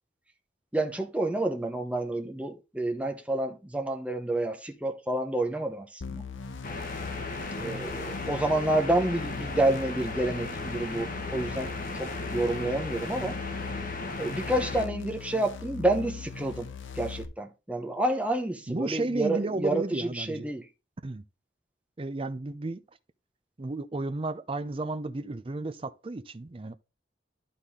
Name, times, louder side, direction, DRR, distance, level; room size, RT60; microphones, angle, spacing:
voice 1, 0.7-6.2 7.6-11.7 12.0-13.4 14.2-16.7 16.9-20.7, right 1 dB, 5° right, 0.8 m, -29 dB
sound 1, 6.0-17.3, left 5 dB, 90° left, 0.8 m, -39 dB
sound 2, 6.6-14.9, left 2 dB, 45° left, 1.3 m, -36 dB
voice 2, 18.7-20.5 21.0-21.2 22.0-22.8 23.6-26.7, right 2 dB, 30° right, 0.5 m, -33 dB
11.5 x 4.2 x 3.6 m
head